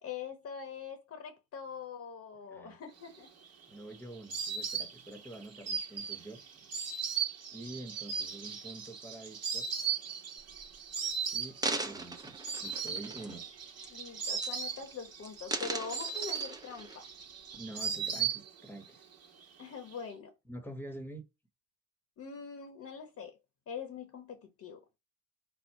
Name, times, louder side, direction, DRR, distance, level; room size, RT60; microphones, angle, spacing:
voice 1, 0.0-3.3 13.9-17.1 19.6-20.3 22.2-23.4 23.7-24.8, left 6 dB, 60° left, 1.0 m, -43 dB
Insect, 3.2-18.9 19.1-19.9, right 7 dB, 55° right, 1.1 m, -38 dB
voice 2, 3.7-6.7 7.5-9.7 11.3-13.4 17.5-19.0 20.5-21.2, right 1 dB, 5° left, 1.0 m, -47 dB
sound 1, 10.4-10.7 11.4-13.5 13.8-14.1 14.4-14.9 15.2-17.0 17.5-17.6, right 2 dB, 15° right, 0.6 m, -38 dB
4.4 x 2.1 x 4.5 m
cardioid pair, 90°, 30 cm